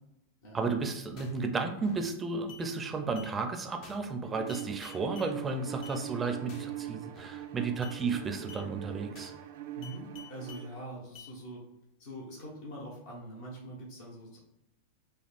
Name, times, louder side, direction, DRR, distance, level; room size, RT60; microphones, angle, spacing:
voice 1, 0.5-9.3, right 4 dB, 20° right, 6 dB, 0.5 m, -33 dB
sound 1, 1.2-1.5 1.8-2.1 2.5-2.7 3.2-3.3 3.8-4.1 4.5-5.3 5.8-6.0 6.5-6.8 7.2-7.5 7.8-8.0 8.5-8.7 9.2-9.5 9.8-10.7 11.2-11.3, left 6 dB, 50° left, 0.7 m, -50 dB
Bowed string instrument, 4.3-10.9, right 12 dB, 65° right, 0.4 m, -42 dB
voice 2, 9.7-11.6 12.0-14.4, right 1 dB, 70° left, -3 dB, 1.2 m, -43 dB
5.1 x 2.3 x 2.5 m, 0.89 s
hypercardioid pair, 125°, 0 cm